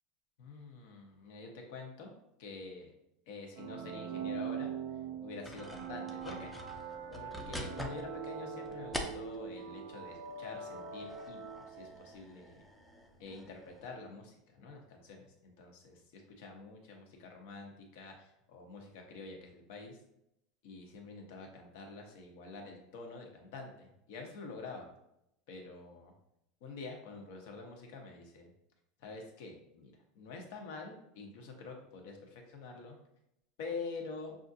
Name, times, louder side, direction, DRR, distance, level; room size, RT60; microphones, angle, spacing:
voice 1, 0.4-2.1 2.4-2.9 3.3-4.7 5.2-6.5 7.1-12.6 13.2-20.0 20.6-24.9 25.5-26.1 26.6-28.5 29.0-33.0 33.6-34.4, left 3 dB, 70° left, 2 dB, 1.0 m, -47 dB
sound 1, 3.6-12.2, right 7 dB, 75° right, 0.4 m, -42 dB
sound 2, 5.4-9.6 10.1-13.9, left 1 dB, 5° left, 0.4 m, -46 dB
6.1 x 2.5 x 2.7 m, 0.81 s
supercardioid pair, 155°, 0 cm